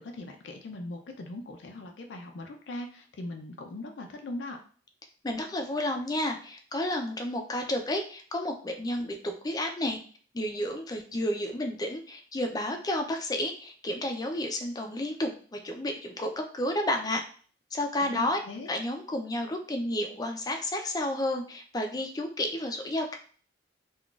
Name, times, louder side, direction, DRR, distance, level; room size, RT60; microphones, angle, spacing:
voice 1, 0.0-4.6 18.0-18.7, left 2 dB, 75° left, 4 dB, 0.5 m, -40 dB
voice 2, 5.2-10.0 10.3-17.2 17.7-18.4 18.7-23.2, left 1 dB, 20° left, 3 dB, 0.4 m, -31 dB
3.8 x 2.3 x 2.3 m, 0.43 s
head